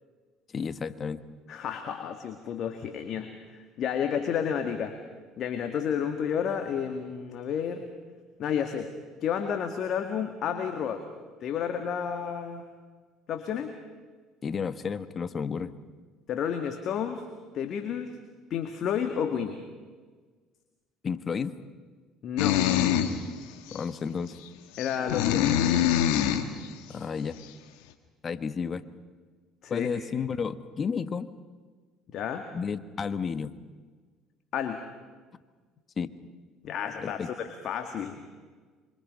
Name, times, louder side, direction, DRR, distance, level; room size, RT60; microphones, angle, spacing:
voice 1, 0.5-1.3 14.4-15.7 21.0-21.6 23.7-24.4 26.9-27.4 28.2-28.9 29.7-31.3 32.5-33.6 36.0-36.1 37.0-37.3, left 6 dB, 40° left, 12 dB, 1.3 m, -32 dB
voice 2, 1.5-3.3 3.8-4.9 5.4-7.8 8.4-8.9 9.2-11.0 11.4-12.6 13.3-13.7 16.3-17.2 17.5-18.1 18.5-19.6 22.2-22.6 24.8-25.7 29.6-29.9 32.1-32.4 34.5-34.8 36.6-38.2, left 8 dB, 55° left, 6 dB, 2.0 m, -31 dB
sound 1, 22.4-23.2 23.7-23.8 24.8-26.5, left 10 dB, 75° left, 1.8 m, -24 dB
26.5 x 25.0 x 5.5 m, 1.4 s
hypercardioid pair, 70°, 0 cm